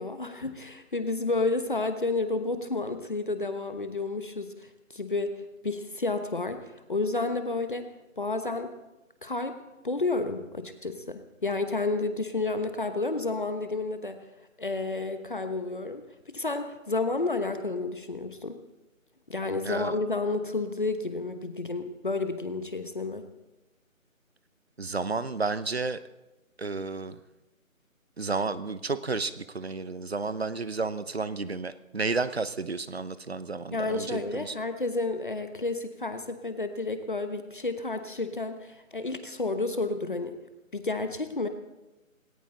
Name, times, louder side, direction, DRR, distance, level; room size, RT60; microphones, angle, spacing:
voice 1, 0.0-7.9 8.2-8.7 9.2-9.6 9.8-14.2 14.6-18.6 19.3-23.3 33.7-40.4 40.7-41.5, left 3 dB, 35° left, 8 dB, 1.1 m, -31 dB
voice 2, 24.8-26.0 26.6-27.2 28.2-34.5, right 4 dB, 50° right, 14 dB, 0.8 m, -32 dB
19.0 x 17.5 x 3.8 m, 1.0 s
figure-of-eight pair, 170°, 41 cm